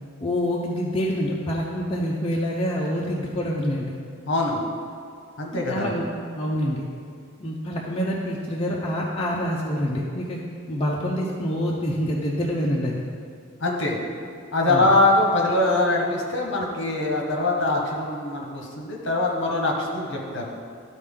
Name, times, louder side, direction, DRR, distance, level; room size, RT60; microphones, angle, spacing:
voice 1, 0.2-3.9 5.5-6.0 6.3-6.9 7.4-10.4 10.7-13.0 14.7-14.9, equal, 25° left, -4 dB, 0.6 m, -26 dB
voice 2, 4.3-4.6 5.4-5.9 13.6-14.0 14.5-20.4, left 2 dB, 55° left, 0 dB, 1.1 m, -23 dB
12.0 x 4.3 x 3.7 m, 2.3 s
head